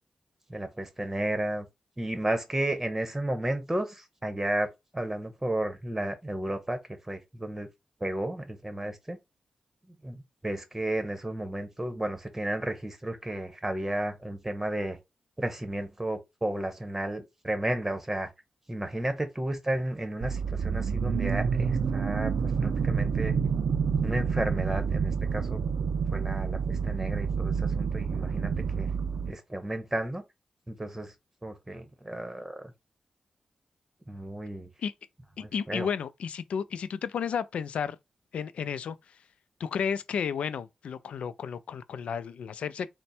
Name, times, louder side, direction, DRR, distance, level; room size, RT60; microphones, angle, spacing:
voice 1, 0.5-1.7 2.0-6.8 7.1-7.7 8.0-9.2 9.9-15.0 15.4-18.3 18.7-23.4 24.0-25.6 26.1-28.9 29.3-30.2 30.7-31.1 31.4-32.7 34.1-34.7 35.4-35.9, right 1 dB, 15° right, 1.1 m, -33 dB
sound 1, 20.2-29.3, right 6 dB, 85° right, 0.4 m, -28 dB
voice 2, 35.4-38.0 38.3-39.2 39.6-42.9, left 7 dB, 85° left, 0.3 m, -32 dB
4.2 x 2.1 x 4.2 m
cardioid pair, 60°, 2 cm